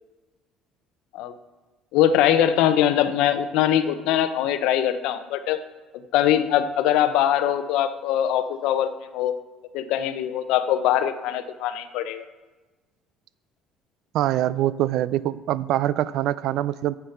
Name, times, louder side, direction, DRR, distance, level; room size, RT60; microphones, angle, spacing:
voice 1, 1.9-5.6 6.1-9.3 9.7-12.2, left 11 dB, 75° left, 11 dB, 0.7 m, -22 dB
voice 2, 14.1-17.0, right 13 dB, 60° right, 18 dB, 0.3 m, -24 dB
9.5 x 8.1 x 5.8 m, 1.2 s
cardioid pair, 165°, 0 cm